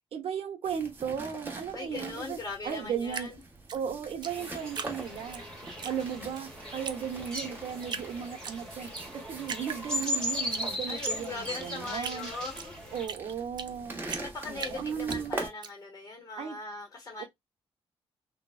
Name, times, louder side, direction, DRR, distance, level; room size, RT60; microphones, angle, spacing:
voice 1, 0.1-2.4 2.6-3.3 3.7-5.4 5.8-12.3 12.9-14.0 14.5-15.4 16.4-16.6 17.2-17.3, right 8 dB, 65° right, 0.8 m, -36 dB
sound 1, 0.6-15.5, right 2 dB, 20° right, 0.8 m, -44 dB
voice 2, 1.7-3.4 10.9-12.8 14.2-17.2, left 3 dB, 35° left, 0.8 m, -40 dB
Drip, 3.1-5.4 5.8-6.5 6.8-7.0 7.2-8.1 8.4-9.1 9.4-10.6 11.0-13.8 14.1-15.7, right 7 dB, 45° right, 0.4 m, -39 dB
sound 2, 4.2-13.1, equal, 5° left, 1.0 m, -38 dB
3.4 x 2.1 x 2.3 m
wide cardioid pair, 175°, 10 cm